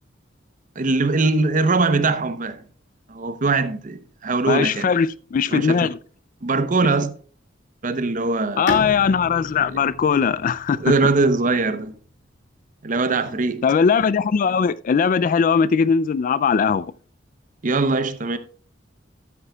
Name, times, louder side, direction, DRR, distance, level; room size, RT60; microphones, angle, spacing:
voice 1, 0.8-2.6 3.1-4.9 5.5-5.9 6.4-7.1 7.8-8.6 9.7-9.8 10.8-11.9 12.8-13.7 17.6-18.4, right 3 dB, 45° right, 0.7 m, -21 dB
voice 2, 4.5-6.0 8.6-10.9 13.6-16.9, left 6 dB, 45° left, 0.3 m, -20 dB
Bowed string instrument, 8.7-12.3, left 2 dB, 70° left, 1.5 m, -33 dB
13.0 x 9.7 x 2.3 m
head